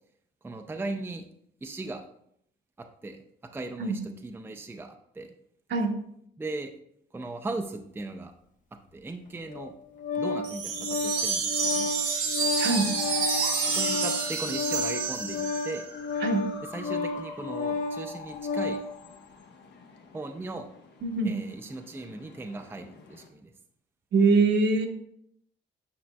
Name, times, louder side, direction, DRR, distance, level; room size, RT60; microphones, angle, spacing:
voice 1, 0.4-1.3 1.6-2.0 2.8-3.2 3.5-5.3 6.4-6.7 7.1-8.3 8.9-9.7 10.2-11.9 13.7-15.9 16.7-18.8 20.1-20.7 21.2-23.5, right 2 dB, 10° right, 5 dB, 0.5 m, -37 dB
Organ, 9.5-18.9, left 4 dB, 40° left, 0.7 m, -32 dB
sound 1, 10.4-15.8, right 5 dB, 90° right, 1.8 m, -29 dB
sound 2, 12.6-23.3, left 5 dB, 60° left, 1.0 m, -44 dB
voice 2, 12.6-12.9 16.2-16.5 21.0-21.4 24.1-24.9, right 3 dB, 60° right, 3 dB, 1.1 m, -23 dB
8.6 x 5.1 x 2.2 m, 0.72 s
cardioid pair, 90°, 20 cm